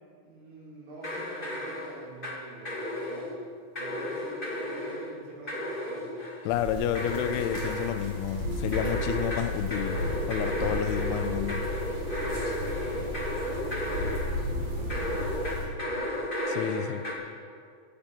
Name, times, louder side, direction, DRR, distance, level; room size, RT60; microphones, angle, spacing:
voice 1, 0.2-3.3 3.7-6.2 12.3-16.2, right 2 dB, 75° right, -7 dB, 6.7 m, -46 dB
sound 1, 1.0-2.4 2.6-3.4 3.7-5.1 5.5-6.5 6.9-8.1 8.7-14.4 14.9-17.1, left 1 dB, 25° left, 1.1 m, -33 dB
voice 2, 6.5-10.0 10.3-11.7 16.5-17.0, left 10 dB, 85° left, 10 dB, 3.0 m, -30 dB
sound 2, 6.5-15.6, left 1 dB, 45° right, 4.7 m, -34 dB
19.5 x 8.6 x 5.3 m, 2.3 s
omnidirectional pair, 5.3 m